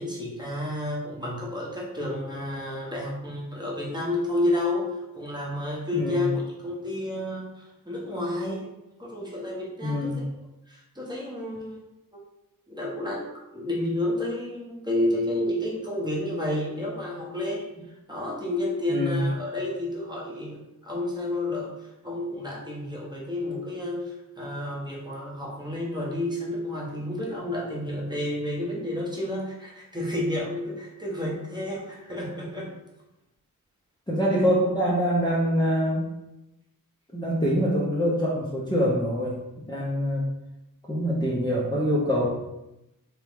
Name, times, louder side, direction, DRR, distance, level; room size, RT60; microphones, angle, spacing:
voice 1, 0.0-4.8 5.1-8.7 9.0-10.3 10.7-11.8 12.1-12.2 12.7-17.7 18.1-20.6 20.8-21.7 22.0-32.7, left 1 dB, 15° right, -4 dB, 0.9 m, -30 dB
voice 2, 5.9-6.3 9.8-10.2 18.9-19.3 34.1-36.1 37.1-39.4 39.7-40.2 40.9-42.3, equal, 10° left, -7 dB, 0.7 m, -24 dB
3.6 x 3.0 x 3.5 m, 0.92 s
wide cardioid pair, 135°, 34 cm